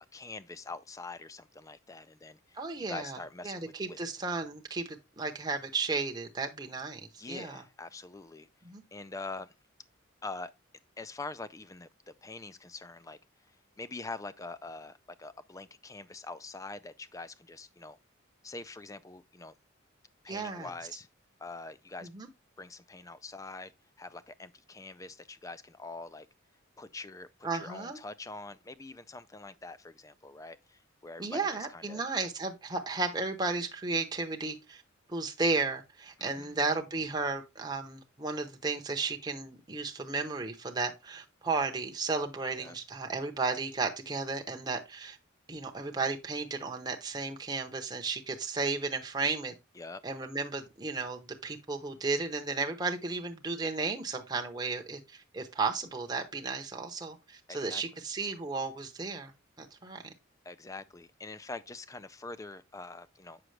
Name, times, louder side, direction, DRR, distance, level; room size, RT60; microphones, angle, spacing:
voice 1, 0.1-2.6 2.9-4.0 7.2-8.5 8.9-9.5 10.2-10.5 11.0-11.9 12.2-13.2 13.8-18.0 18.4-19.5 20.2-21.1 21.4-22.1 22.6-23.7 24.0-26.3 26.8-27.3 27.5-32.0 36.2-36.6 42.6-42.7 49.8-50.0 57.5-57.8 60.4-63.4, left 3 dB, 15° left, 0.4 m, -44 dB
voice 2, 2.5-3.2 3.4-7.0 7.3-7.6 8.6-8.8 20.3-20.7 22.0-22.3 27.4-28.0 31.2-34.8 35.1-45.2 45.5-49.5 50.0-59.3 59.6-60.1, right 3 dB, 20° right, 0.8 m, -34 dB
7.7 x 6.0 x 3.2 m
head